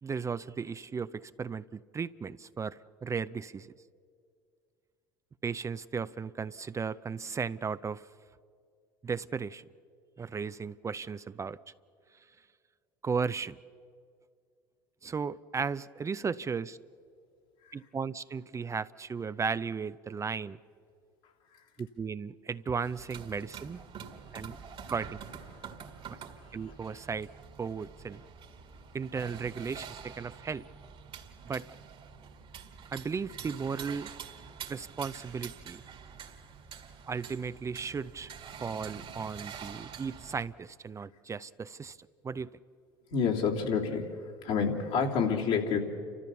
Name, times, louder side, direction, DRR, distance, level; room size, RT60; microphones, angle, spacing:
voice 1, 0.0-3.7 5.4-8.1 9.0-9.6 10.2-11.6 13.0-13.6 15.0-16.8 17.7-20.6 21.8-23.8 24.3-24.6 24.9-25.2 26.5-27.3 27.6-28.2 28.9-30.7 31.5-31.7 32.9-34.1 34.7-35.8 37.1-38.3 38.6-42.0 42.2-42.5, right 5 dB, 25° right, 0.5 m, -35 dB
sound 1, 22.8-40.5, right 7 dB, 50° right, 1.9 m, -46 dB
voice 2, 43.1-45.8, left 6 dB, 70° left, 3.1 m, -29 dB
30.0 x 13.5 x 7.0 m
hypercardioid pair, 75°, 12 cm